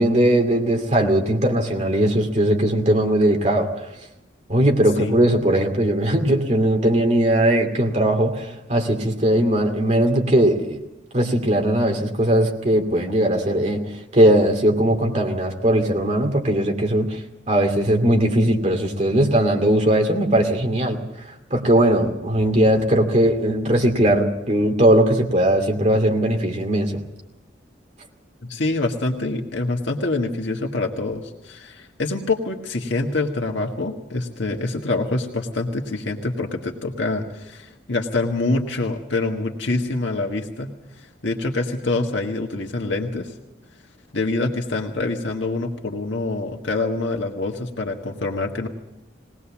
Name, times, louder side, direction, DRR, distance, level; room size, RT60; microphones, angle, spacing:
voice 1, 0.0-3.8 4.5-10.8 11.1-13.8 14.1-17.2 17.5-21.0 21.5-27.0, right 1 dB, 35° right, 3 dB, 2.6 m, -19 dB
voice 2, 28.4-40.7 41.0-43.3 44.1-48.7, left 2 dB, 75° left, 1 dB, 1.6 m, -25 dB
20.5 x 19.0 x 7.2 m, 0.92 s
head